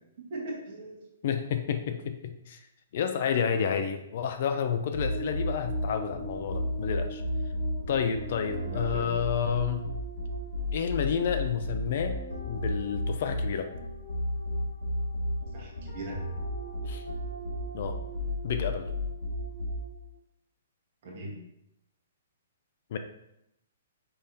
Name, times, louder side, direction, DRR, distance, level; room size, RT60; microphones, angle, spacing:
voice 1, 0.3-1.0 8.6-9.1 15.5-16.2 21.0-21.4, right 1 dB, 40° right, -3 dB, 1.4 m, -39 dB
voice 2, 1.2-2.7 2.9-7.2 7.9-9.9 10.7-12.2 12.5-13.7 16.8-17.0 17.7-18.0 18.4-18.9 22.9-23.0, left 7 dB, 45° left, 7 dB, 0.3 m, -30 dB
sound 1, 4.9-20.1, left 1 dB, 65° left, 1.3 m, -33 dB
5.3 x 3.3 x 2.8 m, 0.83 s
hypercardioid pair, 170°, 0 cm